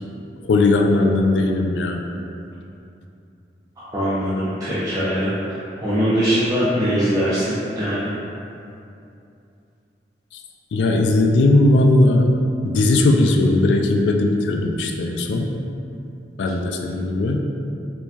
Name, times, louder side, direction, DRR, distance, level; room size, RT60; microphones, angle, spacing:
voice 1, 0.4-2.0 10.7-12.4 12.6-15.5 16.4-17.4, left 2 dB, 80° left, 3 dB, 0.3 m, -18 dB
voice 2, 3.8-5.3 5.8-8.1, equal, 20° right, -12 dB, 0.5 m, -21 dB
4.5 x 2.2 x 2.8 m, 2.7 s
head